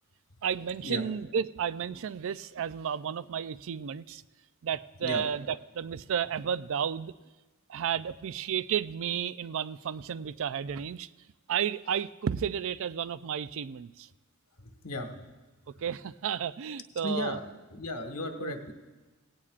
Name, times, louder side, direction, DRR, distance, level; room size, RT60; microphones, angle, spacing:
voice 1, 0.4-4.2 4.6-7.1 7.7-11.1 11.5-14.1 15.8-17.4 18.4-18.7, right 8 dB, 65° right, 16 dB, 0.4 m, -32 dB
voice 2, 14.6-15.1 17.0-17.4 17.7-18.7, left 1 dB, 90° left, 4 dB, 1.6 m, -35 dB
17.5 x 17.0 x 2.5 m, 1.2 s
head